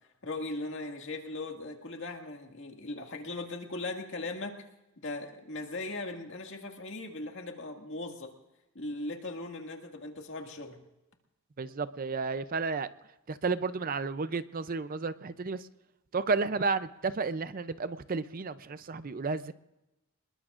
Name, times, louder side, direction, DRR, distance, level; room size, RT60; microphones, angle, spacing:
voice 1, 0.2-4.6 5.0-8.3 8.7-10.8, left 2 dB, 55° left, 3 dB, 2.0 m, -38 dB
voice 2, 11.6-12.9 13.3-15.7 16.1-19.5, right 4 dB, 40° right, 13 dB, 0.5 m, -32 dB
26.0 x 21.0 x 2.5 m, 0.96 s
head